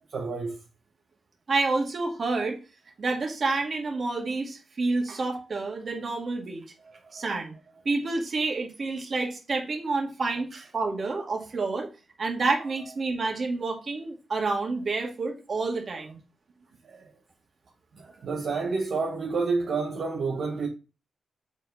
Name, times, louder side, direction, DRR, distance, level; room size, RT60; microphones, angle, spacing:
voice 1, 0.1-0.6 5.1-5.2 7.1-7.2 10.5-10.6 16.8-17.1 18.0-20.7, right 4 dB, 65° right, 1.2 m, -29 dB
voice 2, 1.5-2.6 3.0-6.6 7.1-7.5 7.9-11.9 12.2-16.2, right 3 dB, 45° right, 2.1 m, -29 dB
7.1 x 4.6 x 4.1 m
cardioid pair, 95°, 0 cm